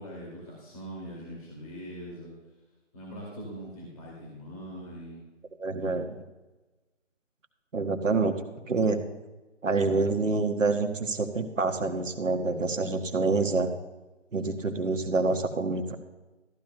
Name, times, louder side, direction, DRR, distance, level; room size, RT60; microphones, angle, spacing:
voice 1, 0.0-2.3 2.9-5.2 5.6-6.0, equal, 30° left, -3 dB, 2.4 m, -42 dB
voice 2, 5.6-6.1 7.7-8.3 8.7-9.0 9.6-13.7 14.3-16.0, right 3 dB, 85° right, 6 dB, 1.4 m, -27 dB
14.0 x 12.0 x 2.2 m, 1.1 s
figure-of-eight pair, 170°, 37 cm